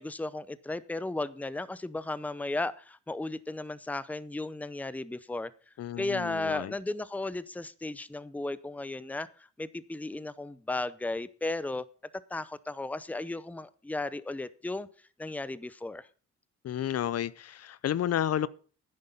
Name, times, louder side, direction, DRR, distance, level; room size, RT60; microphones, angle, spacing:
voice 1, 0.0-5.5 6.0-11.8 12.3-14.9 15.2-16.1, left 2 dB, 5° left, 0.7 m, -35 dB
voice 2, 5.8-6.7 16.6-18.5, left 10 dB, 55° left, 0.6 m, -31 dB
10.5 x 9.9 x 5.4 m
cardioid pair, 90°, 30 cm